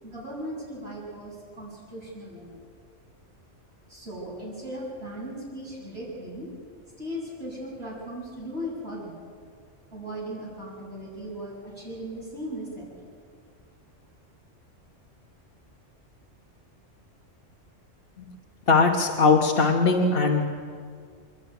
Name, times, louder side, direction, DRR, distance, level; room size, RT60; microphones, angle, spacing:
voice 1, 0.0-2.6 3.9-6.5 7.0-9.3 9.9-12.9, equal, 55° right, -6 dB, 8.3 m, -37 dB
voice 2, 18.7-20.5, left 4 dB, 50° left, 1 dB, 1.5 m, -20 dB
28.5 x 11.0 x 9.4 m, 2.1 s
omnidirectional pair, 1.3 m